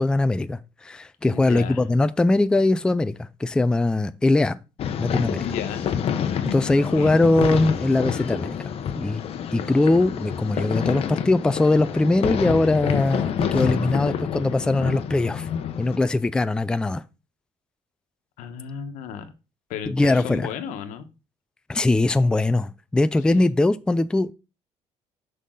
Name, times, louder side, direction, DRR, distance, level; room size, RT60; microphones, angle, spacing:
voice 1, 0.0-4.6 5.0-5.4 6.4-8.6 9.0-9.2 9.5-15.5 15.8-17.0 19.9-20.5 21.7-24.3, left 2 dB, 5° left, 0.3 m, -21 dB
voice 2, 1.3-1.8 5.4-5.9 6.8-7.2 18.4-19.3 19.7-21.1 23.3-23.5, left 8 dB, 90° left, 1.1 m, -34 dB
sound 1, 4.8-16.0, left 8 dB, 50° left, 0.8 m, -28 dB
6.2 x 5.5 x 3.8 m
cardioid pair, 130°, 12 cm